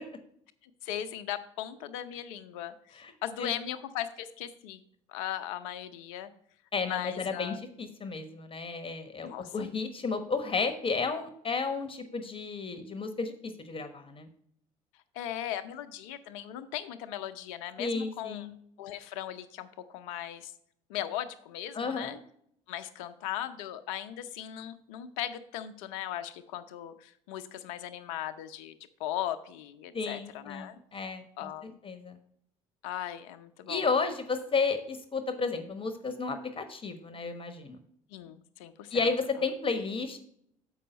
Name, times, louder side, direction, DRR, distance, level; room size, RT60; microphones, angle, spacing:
voice 1, 0.6-4.8 5.1-6.3 6.8-7.6 9.2-9.7 15.1-18.5 18.8-20.5 20.9-22.2 22.7-28.7 29.0-30.8 31.4-31.8 32.8-33.8 38.1-39.1, left 11 dB, 75° left, 11 dB, 0.7 m, -38 dB
voice 2, 6.7-14.3 17.8-18.5 21.7-22.2 29.9-31.5 31.8-32.2 33.7-37.8 38.9-40.2, left 4 dB, 30° left, 9 dB, 1.1 m, -32 dB
7.5 x 5.6 x 5.2 m, 0.69 s
hypercardioid pair, 60°, 17 cm